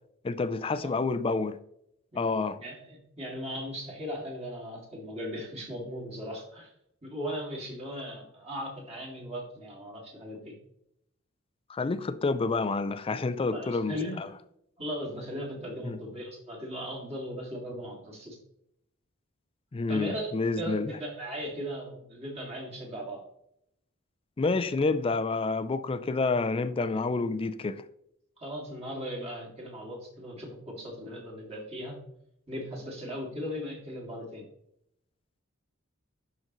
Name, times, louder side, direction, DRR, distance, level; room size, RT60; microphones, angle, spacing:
voice 1, 0.2-1.6 2.2-2.6 11.7-14.3 15.8-16.0 19.7-21.0 24.4-27.8, left 3 dB, 25° left, 0.4 m, -29 dB
voice 2, 2.1-6.7 7.0-10.6 13.5-14.2 14.8-18.4 19.9-23.2 28.4-32.0 32.5-34.4, equal, 30° right, 2.3 m, -38 dB
11.5 x 3.9 x 3.0 m
head